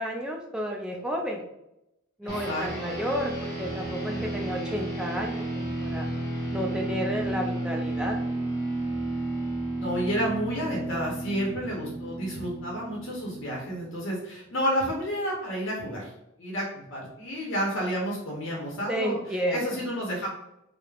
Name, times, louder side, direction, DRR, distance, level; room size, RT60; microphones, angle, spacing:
voice 1, 0.0-1.5 2.2-6.1 6.5-8.1 18.9-19.8, equal, 5° right, 0 dB, 0.3 m, -31 dB
voice 2, 2.2-3.0 4.0-4.4 9.8-16.1 16.4-19.2 19.5-20.3, equal, 65° left, -3 dB, 0.7 m, -31 dB
sound 1, 2.3-14.0, right 2 dB, 15° left, 0.8 m, -32 dB
3.1 x 2.0 x 2.3 m, 0.86 s
head